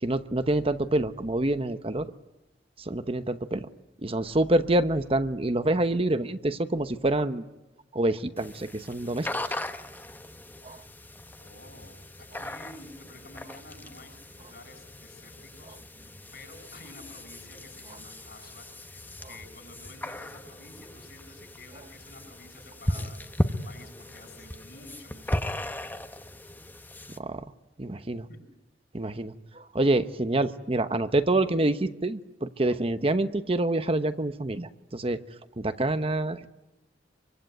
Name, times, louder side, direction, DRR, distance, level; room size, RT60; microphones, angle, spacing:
voice 1, 0.0-2.1 2.8-3.7 4.0-7.4 7.9-9.3 10.6-10.8 27.2-27.4 27.8-28.3 28.9-35.2 35.6-36.5, right 2 dB, 30° right, 10 dB, 0.9 m, -27 dB
sound 1, 8.4-27.2, left 1 dB, 10° left, 1.1 m, -37 dB
voice 2, 11.4-25.7 26.0-26.2 28.3-28.5, left 2 dB, 60° left, 6 dB, 7.4 m, -50 dB
25.5 x 24.5 x 9.3 m, 0.97 s
head